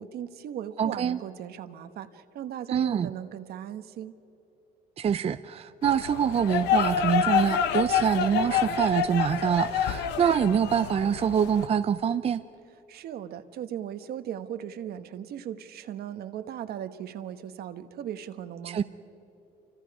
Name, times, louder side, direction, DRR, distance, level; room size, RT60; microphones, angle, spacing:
voice 1, 0.0-4.1 12.9-18.8, right 10 dB, 65° right, 10 dB, 1.3 m, -37 dB
voice 2, 0.8-1.2 2.7-3.1 5.0-12.4 18.6-18.8, right 8 dB, 35° right, 10 dB, 0.5 m, -25 dB
sound 1, 5.8-11.7, left 8 dB, 90° left, 1.0 m, -27 dB
28.5 x 25.0 x 4.9 m, 3.0 s
cardioid pair, 110°, 17 cm